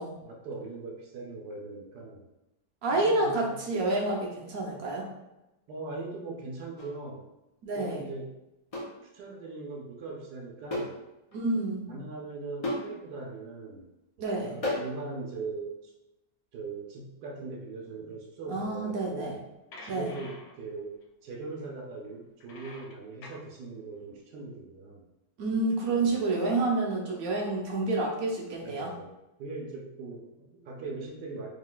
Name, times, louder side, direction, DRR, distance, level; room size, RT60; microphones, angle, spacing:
voice 1, 0.2-2.2 2.9-3.6 5.7-7.3 7.8-8.4 9.1-11.0 11.9-13.9 14.4-15.9 16.5-19.4 19.8-20.9 21.2-25.0 25.9-26.2 28.6-29.1 29.4-31.5, right 3 dB, 85° right, -1 dB, 1.2 m, -40 dB
voice 2, 2.8-5.1 7.6-8.0 11.3-11.9 14.2-14.6 18.5-19.4 19.9-20.1 25.4-28.9, right 2 dB, 70° right, -1 dB, 1.1 m, -29 dB
sound 1, 6.8-7.0 8.7-9.0 10.7-11.0 11.3-11.4 12.6-12.9 14.6-15.0, left 1 dB, 40° left, 0.5 m, -32 dB
sound 2, 19.4-19.5 19.7-21.0 21.4-21.7 22.3-23.5, left 2 dB, 75° left, 1.1 m, -48 dB
3.8 x 3.1 x 2.2 m, 0.96 s
omnidirectional pair, 1.7 m